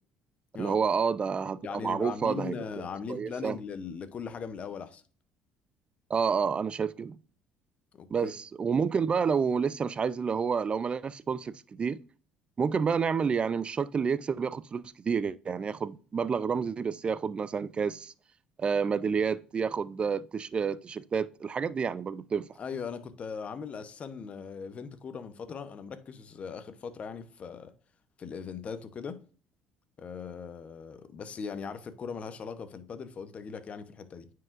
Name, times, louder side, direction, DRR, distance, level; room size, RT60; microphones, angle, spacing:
voice 1, 0.6-2.6 3.1-3.6 6.1-7.2 8.1-12.0 12.6-18.1 18.6-22.5, right 6 dB, 35° right, 0.4 m, -29 dB
voice 2, 1.6-5.0 7.9-8.3 22.6-27.7 28.2-29.2 30.0-34.3, left 6 dB, 45° left, 0.9 m, -39 dB
9.4 x 4.8 x 2.5 m
supercardioid pair, 80°, 3 cm